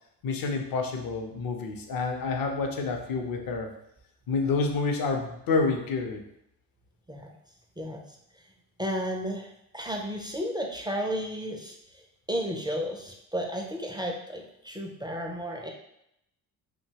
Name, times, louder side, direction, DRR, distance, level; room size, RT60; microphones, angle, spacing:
voice 1, 0.2-3.7 4.3-6.2, left 4 dB, 55° left, 4 dB, 0.7 m, -28 dB
voice 2, 8.8-9.5 9.7-12.0 12.3-15.7, equal, 10° right, 1 dB, 0.4 m, -33 dB
2.7 x 2.2 x 2.7 m, 0.77 s
hypercardioid pair, 50°, 42 cm